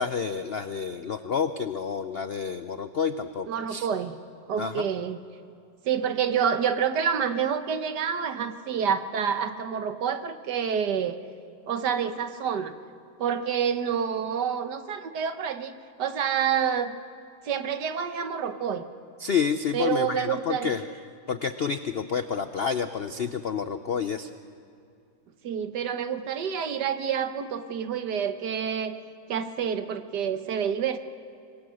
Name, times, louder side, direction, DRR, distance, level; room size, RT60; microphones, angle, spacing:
voice 1, 0.0-3.9 4.6-4.9 19.2-20.9 21.3-24.3, left 6 dB, 70° left, 10 dB, 0.5 m, -29 dB
voice 2, 3.5-4.2 4.5-5.2 5.9-11.2 11.7-12.7 13.2-15.7 16.0-17.0 17.5-18.8 19.7-20.8 25.4-29.0 29.3-31.0, right 7 dB, 70° right, 9 dB, 1.6 m, -28 dB
26.5 x 21.5 x 6.4 m, 2.5 s
omnidirectional pair, 1.9 m